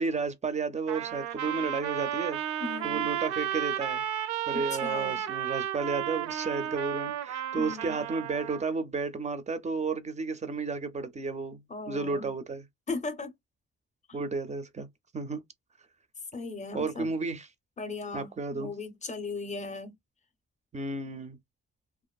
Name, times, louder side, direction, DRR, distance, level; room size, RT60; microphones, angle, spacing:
voice 1, 0.0-2.4 2.8-4.0 4.5-12.6 14.1-14.9 15.1-15.4 16.7-17.5 18.1-18.7 20.7-21.4, right 4 dB, 25° right, 0.4 m, -32 dB
Trumpet, 0.9-8.7, right 10 dB, 85° right, 0.5 m, -33 dB
voice 2, 2.6-3.1 4.5-5.2 7.5-8.0 11.7-12.3 12.9-13.3 14.1-14.2 16.3-17.1 17.8-19.9, left 3 dB, 25° left, 0.6 m, -37 dB
2.5 x 2.4 x 2.2 m
cardioid pair, 140°, 29 cm